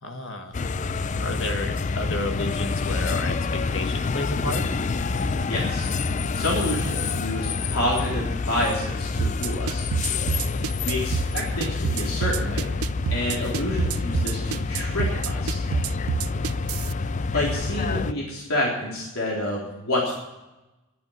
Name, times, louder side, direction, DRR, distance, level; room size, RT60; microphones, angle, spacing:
voice 1, 0.0-0.6 1.2-4.7 10.4-10.7 16.2-16.6, left 2 dB, 60° left, 5 dB, 1.7 m, -32 dB
sound 1, 0.5-18.1, left 4 dB, 35° left, 0.4 m, -27 dB
voice 2, 5.4-5.9 6.3-9.9 10.8-12.7 13.1-15.6 17.3-20.1, left 1 dB, 75° left, -4 dB, 3.7 m, -28 dB
sound 2, 9.2-16.9, right 6 dB, 80° right, 0.4 m, -27 dB
11.0 x 11.0 x 9.1 m, 1.0 s
head